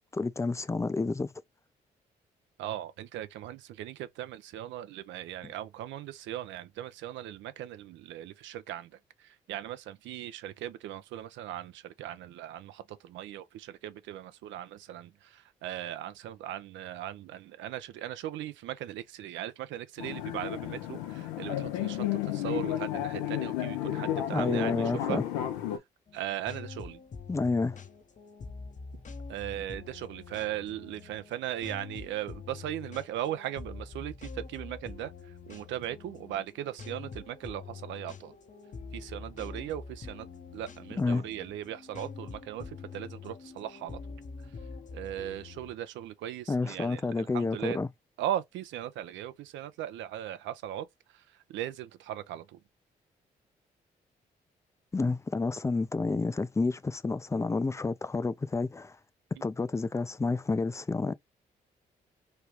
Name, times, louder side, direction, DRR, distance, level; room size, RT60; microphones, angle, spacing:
voice 1, 0.1-1.3 5.4-5.5 24.3-25.2 27.3-27.8 41.0-41.3 46.5-47.9 54.9-59.0 59.4-61.1, left 3 dB, 15° left, 0.4 m, -29 dB
voice 2, 2.6-8.9 9.2-25.2 26.1-27.0 29.3-35.1 35.5-38.3 38.9-40.3 40.5-44.0 44.9-47.8 48.2-50.9 51.1-51.2 51.5-52.6, right 12 dB, 70° right, 0.5 m, -38 dB
sound 1, 20.0-25.8, left 11 dB, 80° left, 0.5 m, -32 dB
sound 2, 26.1-45.7, left 4 dB, 40° left, 0.7 m, -45 dB
3.2 x 2.3 x 3.0 m
hypercardioid pair, 40°, 20 cm